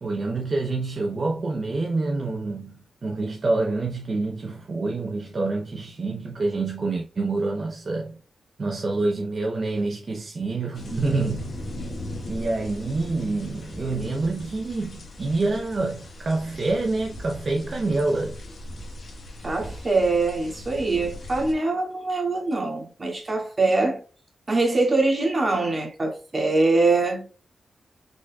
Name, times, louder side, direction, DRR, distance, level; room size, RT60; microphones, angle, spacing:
voice 1, 0.0-8.2 8.6-11.6 12.3-18.4, right 3 dB, 50° right, 0.7 m, -27 dB
sound 1, 10.7-21.5, left 1 dB, 60° left, 1.4 m, -38 dB
voice 2, 19.4-24.0 24.5-27.3, right 3 dB, 35° right, 2.0 m, -23 dB
5.0 x 4.1 x 2.3 m
cardioid pair, 75°, 0 cm